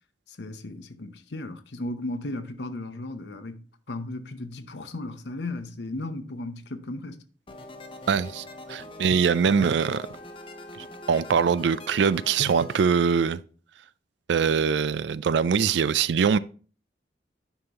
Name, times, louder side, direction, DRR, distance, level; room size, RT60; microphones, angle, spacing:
voice 1, 0.3-7.2, left 2 dB, 70° left, 0.8 m, -35 dB
sound 1, 7.5-12.8, left 1 dB, 30° left, 0.8 m, -43 dB
voice 2, 8.1-10.1 10.8-13.4 14.3-16.4, right 6 dB, 75° right, 0.4 m, -23 dB
9.9 x 5.5 x 2.9 m
head